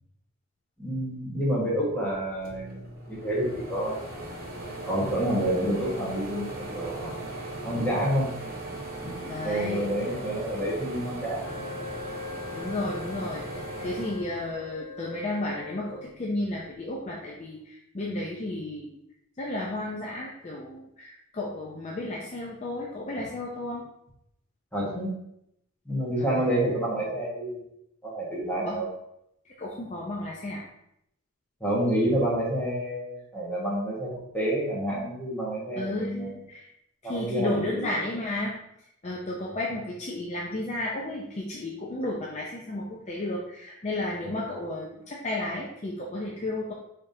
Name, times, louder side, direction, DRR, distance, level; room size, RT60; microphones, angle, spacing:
voice 1, 0.8-2.8 3.1-4.0 4.8-7.1 7.6-8.3 9.0-9.1 9.4-11.6 24.7-25.1 25.8-27.6 28.0-28.9 31.6-36.3 37.0-37.9 44.2-44.3, right 1 dB, 10° left, -6 dB, 1.4 m, -28 dB
sound 1, 2.1-2.2 2.4-15.0 15.5-16.6, right 2 dB, 45° right, 1.2 m, -38 dB
voice 2, 9.2-9.9 12.5-19.0 19.4-23.8 26.2-26.5 28.6-28.8 29.4-30.6 35.7-36.7 37.0-38.6 39.0-46.7, left 1 dB, 30° left, -3 dB, 0.5 m, -33 dB
Wind instrument woodwind instrument, 11.4-16.2, left 7 dB, 60° left, 1.0 m, -42 dB
5.4 x 3.6 x 2.7 m, 0.78 s
head